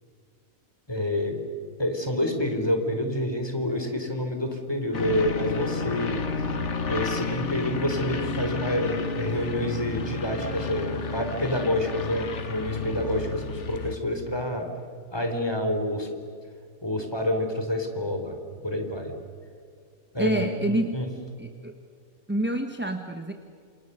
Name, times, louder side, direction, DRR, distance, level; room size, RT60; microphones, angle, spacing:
voice 1, 0.9-1.3 1.8-6.2 6.9-14.7 15.1-16.1 16.8-18.4 18.6-19.1 20.1-20.4 20.9-21.1, left 1 dB, 15° left, 4 dB, 3.4 m, -28 dB
sound 1, 4.9-14.0, left 4 dB, 55° left, 1.7 m, -31 dB
voice 2, 20.2-21.0 21.4-21.8 22.3-23.3, right 1 dB, 10° right, 5 dB, 1.2 m, -27 dB
28.5 x 27.5 x 6.7 m, 2.3 s
omnidirectional pair, 1.4 m